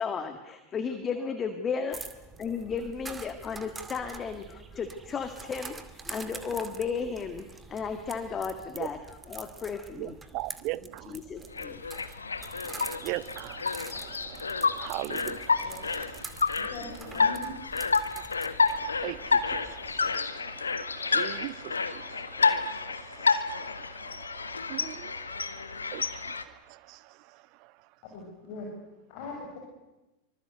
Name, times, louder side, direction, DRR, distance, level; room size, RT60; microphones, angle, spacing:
voice 1, 0.0-2.0 2.4-10.2 11.1-11.8 12.1-12.2, left 6 dB, 25° left, 8 dB, 1.9 m, -34 dB
sound 1, 1.9-20.2, right 4 dB, 15° right, 2.2 m, -46 dB
voice 2, 10.0-11.2 12.6-16.1 18.5-27.7, right 19 dB, 45° right, 19 dB, 0.9 m, -41 dB
sound 2, 11.5-26.4, left 4 dB, 75° left, 1.6 m, -30 dB
voice 3, 16.5-17.5 28.1-28.7 29.1-29.6, left 3 dB, 45° left, 1 dB, 6.4 m, -41 dB
26.0 x 25.0 x 8.1 m, 1.1 s
figure-of-eight pair, 90°, 0 cm